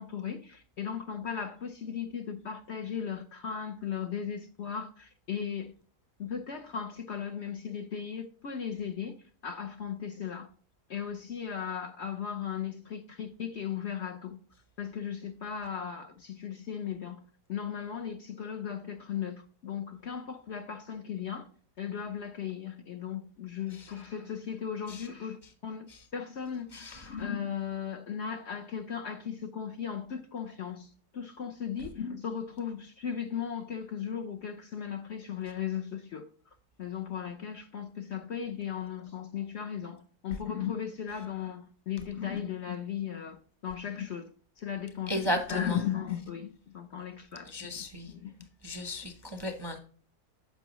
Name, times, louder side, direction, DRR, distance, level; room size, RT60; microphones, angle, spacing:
voice 1, 0.0-5.7 6.2-9.1 9.4-10.5 10.9-14.4 14.8-17.2 17.5-21.5 21.8-25.9 26.1-36.3 36.8-43.4 43.6-44.3 44.6-47.5 48.0-48.3, left 8 dB, 55° left, 0.8 m, -36 dB
voice 2, 26.7-27.1 45.1-45.8 47.5-48.1 48.6-49.8, equal, 25° right, 0.6 m, -35 dB
10.0 x 6.8 x 3.1 m
omnidirectional pair, 1.7 m